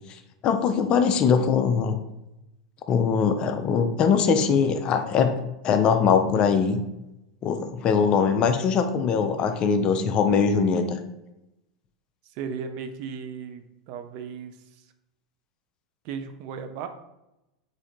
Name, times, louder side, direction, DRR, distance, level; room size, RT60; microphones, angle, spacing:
voice 1, 0.4-2.0 2.9-5.4 5.6-6.8 7.4-11.0, left 6 dB, 35° left, 7 dB, 0.4 m, -22 dB
voice 2, 12.4-14.6 16.0-16.9, right 6 dB, 45° right, 8 dB, 0.3 m, -35 dB
3.6 x 2.6 x 3.2 m, 0.91 s
figure-of-eight pair, 85°, 3 cm